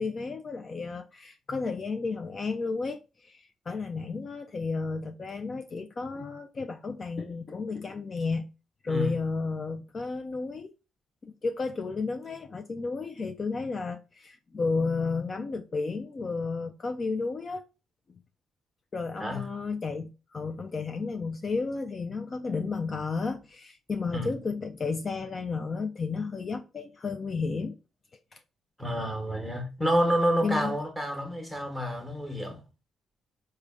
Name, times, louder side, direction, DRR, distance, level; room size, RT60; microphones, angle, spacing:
voice 1, 0.0-8.4 8.8-10.7 11.2-17.6 18.9-27.8 28.3-28.4 30.1-30.8, left 4 dB, 40° left, 0.3 m, -32 dB
voice 2, 8.9-9.2 19.2-19.4 24.1-24.3 28.8-32.6, equal, ahead, 1.0 m, -28 dB
3.4 x 2.1 x 3.5 m
cardioid pair, 90°, 0 cm